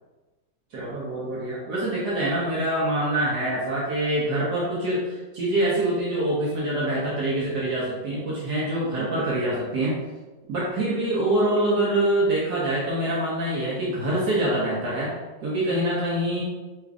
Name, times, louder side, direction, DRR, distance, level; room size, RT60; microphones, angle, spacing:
voice 1, 0.7-10.0 10.5-15.1 15.4-16.4, right 1 dB, 70° right, -6 dB, 1.5 m, -25 dB
5.0 x 3.6 x 2.4 m, 1.2 s
omnidirectional pair, 1.9 m